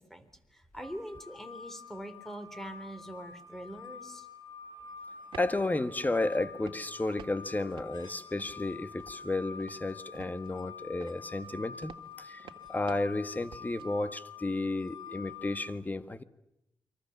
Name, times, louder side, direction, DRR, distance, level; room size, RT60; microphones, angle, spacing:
voice 1, 0.0-4.3, right 1 dB, 5° left, 3.5 m, -43 dB
sound 1, 0.8-15.6, left 5 dB, 60° left, 4.2 m, -47 dB
sound 2, 5.1-5.7 6.0-6.4 6.6-7.4 7.6-8.7 9.0-9.3 9.6-10.6 11.0-13.9, right 8 dB, 85° right, 1.8 m, -50 dB
voice 2, 5.4-12.4 12.7-16.2, left 2 dB, 20° left, 1.4 m, -32 dB
29.5 x 24.0 x 7.1 m
cardioid pair, 80°, 8 cm